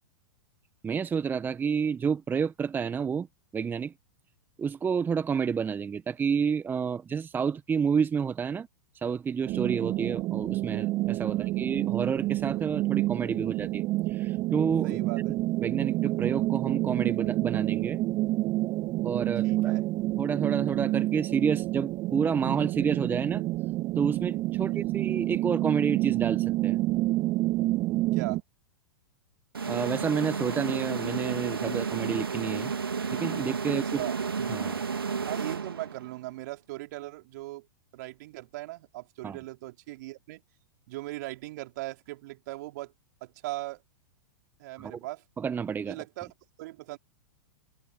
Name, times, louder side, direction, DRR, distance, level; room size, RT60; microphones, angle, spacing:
voice 1, 0.8-3.3 3.5-3.9 4.6-8.7 8.9-15.0 15.6-18.0 19.0-19.7 20.2-23.4 24.0-26.8 29.7-32.7 33.1-34.1 34.5-34.8 39.2-39.4 44.8-44.9 45.4-46.0, right 6 dB, 15° right, 1.4 m, -29 dB
sound 1, 9.5-28.4, right 17 dB, 35° right, 1.9 m, -28 dB
voice 2, 14.8-15.4 19.4-19.8 24.6-24.8 28.1-28.4 33.7-34.2 35.2-37.7 37.9-40.4 40.9-42.9 43.2-43.8 44.6-45.2 45.8-46.3 46.6-47.0, right 19 dB, 50° right, 4.3 m, -39 dB
sound 2, 29.5-36.2, right 5 dB, 80° right, 2.3 m, -32 dB
figure-of-eight pair, 105°, 12 cm